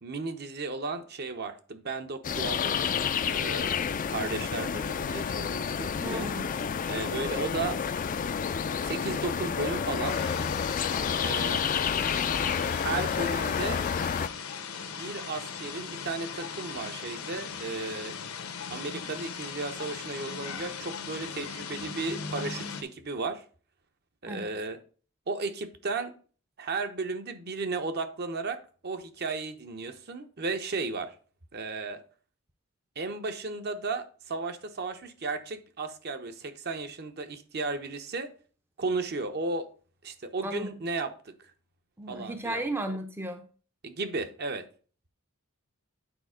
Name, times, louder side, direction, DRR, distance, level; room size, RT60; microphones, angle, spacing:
voice 1, 0.0-2.9 3.2-3.7 4.1-6.3 6.9-7.8 8.8-10.2 11.2-11.6 12.8-13.8 15.0-18.1 18.7-23.4 24.2-24.8 25.3-26.2 26.6-31.1 31.5-32.0 33.0-38.3 38.8-39.7 40.0-41.3 42.1-42.6 43.8-44.7, right 3 dB, 50° right, 0.8 m, -34 dB
sound 1, 2.2-14.3, left 7 dB, 40° left, 0.4 m, -29 dB
voice 2, 6.0-6.5 24.3-24.5 40.4-40.7 42.0-43.5, right 1 dB, 10° right, 0.5 m, -35 dB
sound 2, 10.0-22.8, left 6 dB, 85° left, 1.2 m, -38 dB
9.0 x 4.1 x 5.0 m
head